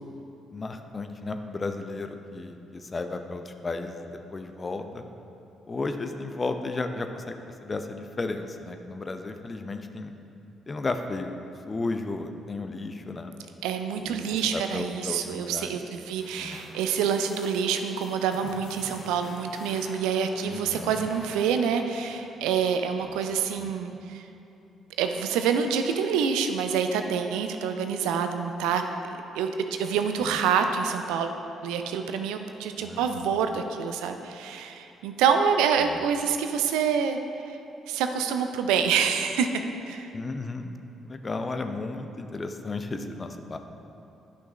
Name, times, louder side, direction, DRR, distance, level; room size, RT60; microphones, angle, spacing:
voice 1, 0.5-5.0 5.7-7.4 7.6-10.1 10.7-11.3 11.7-13.3 14.0-15.8 16.4-16.6 20.4-21.0 23.0-23.2 23.6-23.7 30.2-30.4 32.8-33.2 35.8-36.0 40.1-40.8 41.0-43.6, left 3 dB, 30° left, 7 dB, 0.6 m, -34 dB
voice 2, 13.6-24.2 25.0-28.8 29.4-31.3 31.6-37.2 37.5-37.6 37.9-40.1, right 7 dB, 70° right, 7 dB, 0.4 m, -27 dB
sound 1, 16.2-22.7, left 2 dB, 60° left, 1.1 m, -47 dB
11.0 x 5.9 x 3.1 m, 2.8 s
figure-of-eight pair, 40°, 0 cm